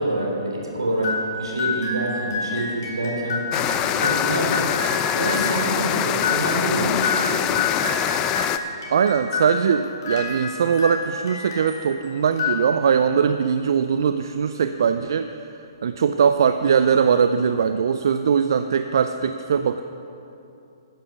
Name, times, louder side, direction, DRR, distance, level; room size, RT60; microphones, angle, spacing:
voice 1, 0.0-3.4 3.9-4.5 5.1-7.6, right 1 dB, 85° right, -1 dB, 3.3 m, -26 dB
sound 1, 1.0-11.9 12.3-13.1, left 4 dB, 55° left, 3.2 m, -29 dB
sound 2, 3.5-8.6, left 10 dB, 25° left, 0.5 m, -24 dB
voice 2, 8.9-15.4 15.8-19.8, right 7 dB, 60° right, 9 dB, 0.4 m, -21 dB
11.5 x 10.0 x 5.9 m, 2.8 s
figure-of-eight pair, 130°, 2 cm